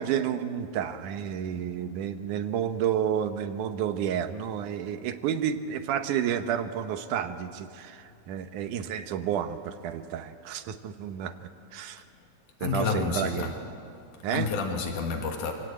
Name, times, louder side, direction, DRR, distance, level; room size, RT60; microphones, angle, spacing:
voice 1, 0.0-11.4 11.7-12.0 12.6-13.5 14.2-14.5, right 9 dB, 85° right, 9 dB, 2.5 m, -30 dB
voice 2, 12.6-13.5 14.3-15.5, left 5 dB, 85° left, 3 dB, 3.1 m, -29 dB
26.0 x 17.0 x 8.6 m, 2.5 s
omnidirectional pair, 3.5 m